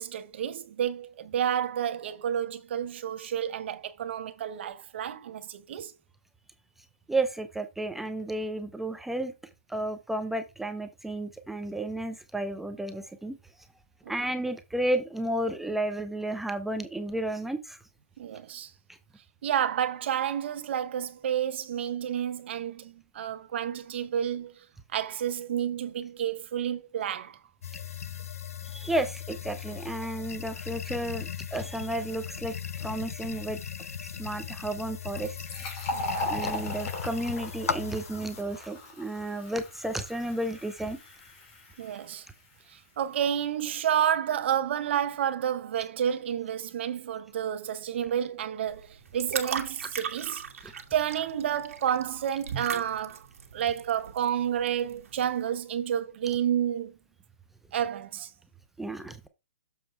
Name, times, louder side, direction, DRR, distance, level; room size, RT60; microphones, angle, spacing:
voice 1, 0.0-5.9 14.0-14.1 18.2-18.7 19.4-24.6 24.9-27.4 35.9-36.3 41.8-42.3 42.7-53.3 53.5-56.9 57.7-58.3, right 9 dB, 50° right, 1.0 m, -30 dB
voice 2, 7.1-9.3 9.7-13.4 14.1-17.8 28.6-32.5 32.8-33.6 34.2-35.4 36.3-41.0 58.8-59.3, right 1 dB, 5° right, 0.5 m, -32 dB
sound 1, 27.6-38.4, left 8 dB, 80° left, 0.7 m, -38 dB
Fill (with liquid), 35.0-42.4, left 2 dB, 30° left, 2.9 m, -38 dB
sound 2, 48.7-55.4, right 7 dB, 70° right, 1.6 m, -38 dB
7.2 x 4.3 x 4.5 m
hypercardioid pair, 150°, 8 cm